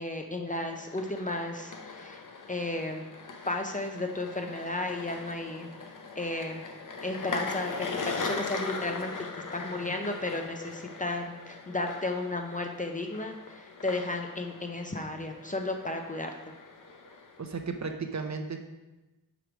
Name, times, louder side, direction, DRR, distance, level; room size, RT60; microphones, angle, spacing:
voice 1, 0.0-2.2 2.5-3.0 3.5-5.7 6.2-6.6 7.0-9.3 9.5-16.3, left 2 dB, 20° left, 3 dB, 0.6 m, -33 dB
sound 1, 0.6-17.6, left 4 dB, 55° left, 0.8 m, -40 dB
voice 2, 17.4-18.6, right 4 dB, 45° right, 5 dB, 0.7 m, -34 dB
5.0 x 4.6 x 6.1 m, 1.1 s
wide cardioid pair, 95°, 38 cm